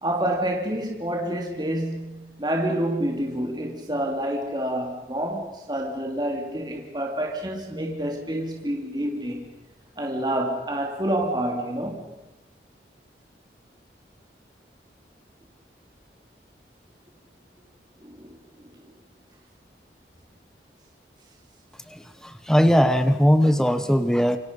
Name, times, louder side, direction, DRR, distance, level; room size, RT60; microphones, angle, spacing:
voice 1, 0.0-9.5 10.0-12.1 18.0-18.4 18.8-18.9, right 1 dB, 25° right, 3.1 m, -28 dB
voice 2, 21.9-24.4, equal, 5° left, 1.1 m, -20 dB
28.0 x 25.0 x 5.5 m
head